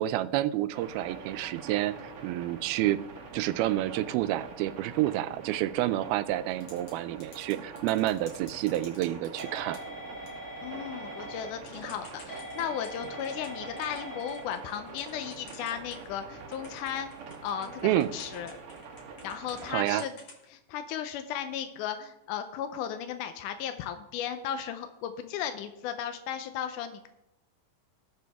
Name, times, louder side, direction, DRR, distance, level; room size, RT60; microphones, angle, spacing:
voice 1, 0.0-3.0 3.3-9.8 17.8-18.1 19.7-20.1, right 14 dB, 85° right, 13 dB, 2.5 m, -29 dB
sound 1, 0.7-19.9, right 4 dB, 60° right, 1.5 m, -45 dB
Typing / Telephone, 6.5-6.9 7.2-16.2 16.5-19.6 19.9-20.4, equal, 45° left, 3.3 m, -44 dB
voice 2, 10.6-17.1 17.4-18.5 19.2-20.1 20.5-27.1, left 9 dB, 80° left, 8 dB, 1.9 m, -35 dB
19.5 x 7.0 x 3.5 m, 0.93 s
omnidirectional pair, 4.3 m